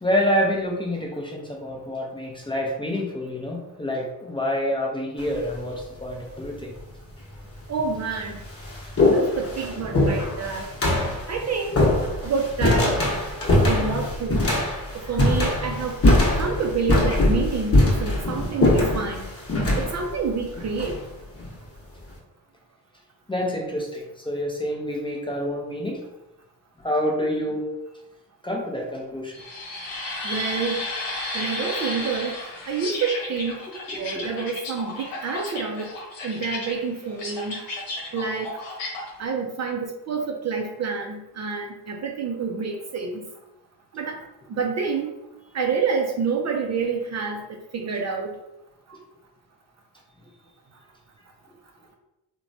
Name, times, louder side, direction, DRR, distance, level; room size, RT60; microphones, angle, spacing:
voice 1, 0.0-6.7 23.3-26.0 26.8-27.7 28.4-29.3 33.9-34.0, equal, 10° left, -1 dB, 0.5 m, -27 dB
sound 1, 5.2-5.6 6.6-6.7 7.5-7.6 8.0-21.5, left 1 dB, 30° left, 0.9 m, -22 dB
voice 2, 7.7-8.4 9.0-10.7 11.3-11.8 12.2-12.9 13.6-14.5 14.9-16.0 16.3-19.3 19.8-21.0 30.2-30.8 31.3-32.3 32.7-33.7 34.0-35.9 36.2-37.5 38.1-38.5 39.2-43.2 43.9-44.2 44.5-45.1 45.5-48.4, right 5 dB, 40° right, 2 dB, 0.4 m, -28 dB
sound 2, 29.3-39.1, left 2 dB, 75° left, 0.9 m, -33 dB
2.9 x 2.2 x 2.6 m, 0.92 s
supercardioid pair, 65°, 45 cm